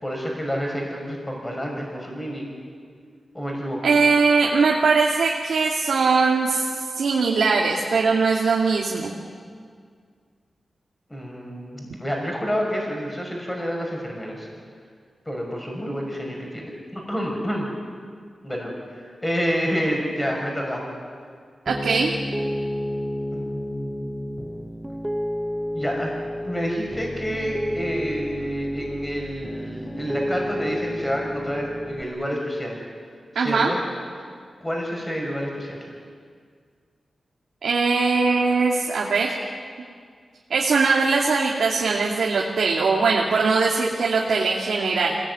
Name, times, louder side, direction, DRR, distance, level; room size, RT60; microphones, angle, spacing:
voice 1, 0.0-2.5 3.3-3.8 11.1-14.5 15.3-17.7 18.4-20.8 23.3-24.1 25.7-26.1 26.4-32.8 33.3-33.8 34.6-35.9, equal, 10° left, -1 dB, 5.9 m, -29 dB
voice 2, 3.8-6.7 6.9-9.2 21.7-22.1 33.3-33.7 37.6-39.3 40.5-45.2, right 4 dB, 90° right, -2 dB, 2.5 m, -21 dB
Piano, 21.7-32.0, equal, 5° right, 1.2 m, -30 dB
26.0 x 18.5 x 9.5 m, 2.1 s
wide cardioid pair, 115°, 0 cm